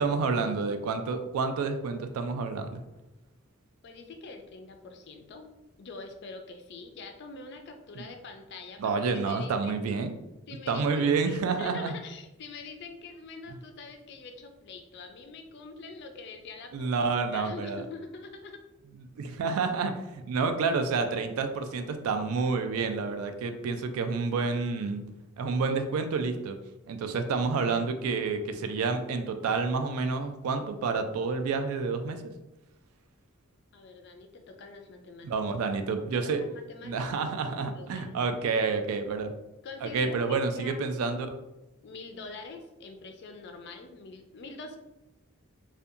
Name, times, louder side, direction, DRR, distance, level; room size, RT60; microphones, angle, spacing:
voice 1, 0.0-2.8 8.0-8.1 8.8-10.1 10.7-11.9 16.7-17.8 19.2-25.0 25.4-26.6 26.9-32.2 35.2-36.4 36.8-39.3 39.8-41.3, right 4 dB, 75° right, 8 dB, 0.3 m, -29 dB
voice 2, 3.8-5.5 5.8-9.8 10.5-17.1 17.3-18.6 33.7-35.3 36.2-37.0 37.6-38.6 39.6-40.9 41.8-44.8, left 3 dB, 50° left, 5 dB, 0.3 m, -45 dB
2.6 x 2.2 x 2.4 m, 0.96 s
head